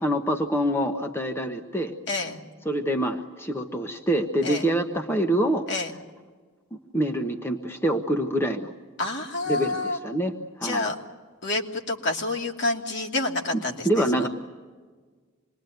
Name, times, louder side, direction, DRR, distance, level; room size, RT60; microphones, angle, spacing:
voice 1, 0.0-1.9 2.6-5.7 6.9-8.7 9.4-10.9 13.5-14.3, right 1 dB, 10° left, 4 dB, 1.2 m, -26 dB
voice 2, 2.1-2.4 4.4-4.6 5.7-5.9 9.0-10.0 10.6-10.9 11.4-14.3, left 2 dB, 55° left, 2 dB, 2.7 m, -28 dB
27.0 x 21.5 x 9.3 m, 1.5 s
head